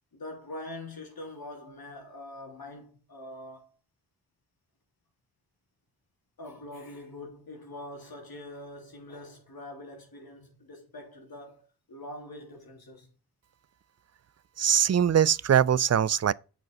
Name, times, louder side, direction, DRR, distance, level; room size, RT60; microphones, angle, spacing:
voice 1, 0.1-3.7 6.4-13.1, left 1 dB, 65° left, 3.1 m, -44 dB
voice 2, 14.6-16.3, right 9 dB, 40° right, 0.5 m, -22 dB
7.8 x 5.2 x 5.4 m
cardioid pair, 45°, 39 cm